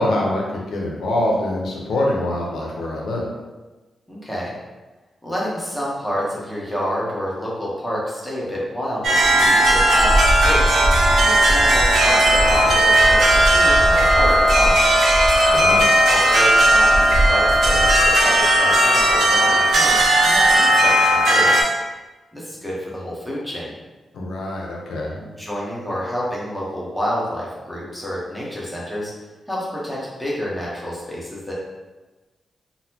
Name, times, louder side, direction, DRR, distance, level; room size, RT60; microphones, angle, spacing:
voice 1, 0.0-3.3 15.5-15.9 24.1-25.2, left 1 dB, 85° left, -2 dB, 0.6 m, -24 dB
voice 2, 4.1-4.5 5.2-10.8 11.2-14.9 16.0-21.7 22.3-23.7 25.1-29.1 29.5-31.5, equal, 5° left, -6 dB, 0.9 m, -28 dB
sound 1, 9.0-21.6, right 1 dB, 80° right, 0.5 m, -15 dB
3.9 x 2.1 x 2.8 m, 1.2 s
cardioid pair, 105°, 0 cm